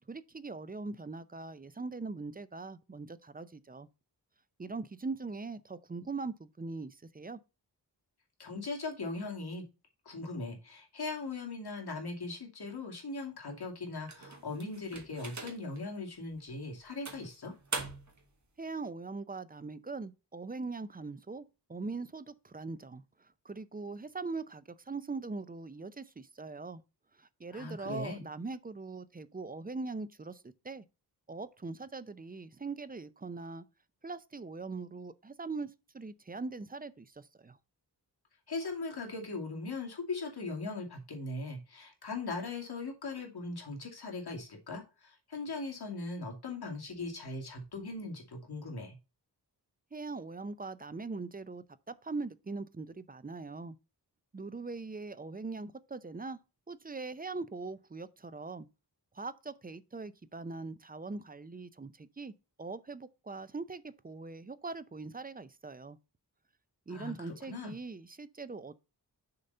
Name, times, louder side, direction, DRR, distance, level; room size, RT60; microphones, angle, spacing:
voice 1, 0.1-3.9 4.6-7.4 18.6-21.4 21.7-23.0 23.4-26.8 27.2-30.8 31.3-33.6 34.0-37.6 49.9-53.8 54.3-56.4 56.7-58.7 59.1-62.3 62.6-66.0 66.9-68.8, right 3 dB, 20° right, 0.5 m, -41 dB
voice 2, 8.4-9.6 10.1-17.5 27.5-28.2 38.5-49.0 66.9-67.1 67.5-67.7, left 3 dB, 65° left, 2.4 m, -39 dB
sound 1, 14.1-15.8 16.3-16.5 17.1-18.3, right 4 dB, 45° right, 1.6 m, -42 dB
6.7 x 4.0 x 5.4 m
wide cardioid pair, 100°, 42 cm